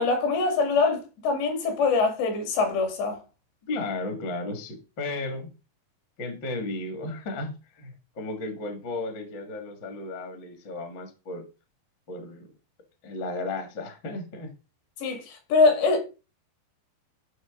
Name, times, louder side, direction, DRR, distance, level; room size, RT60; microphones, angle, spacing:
voice 1, 0.0-3.2 15.0-16.0, left 4 dB, 70° left, 4.2 m, -23 dB
voice 2, 3.6-5.5 6.2-11.4 12.1-12.5 13.0-14.5, left 2 dB, 45° left, 1.5 m, -34 dB
13.0 x 6.2 x 3.7 m
omnidirectional pair, 5.3 m